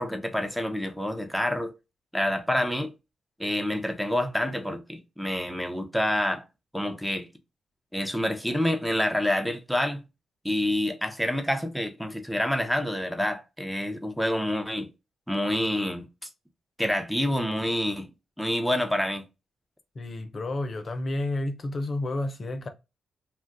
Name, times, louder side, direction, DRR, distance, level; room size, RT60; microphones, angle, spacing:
voice 1, 0.0-1.7 2.1-2.9 3.4-6.4 6.7-7.3 7.9-10.0 10.4-14.9 15.3-16.3 16.8-18.1 18.4-19.2, left 1 dB, ahead, 0.8 m, -27 dB
voice 2, 19.9-22.7, left 2 dB, 50° left, 0.7 m, -31 dB
2.5 x 2.2 x 3.5 m
supercardioid pair, 45°, 0 cm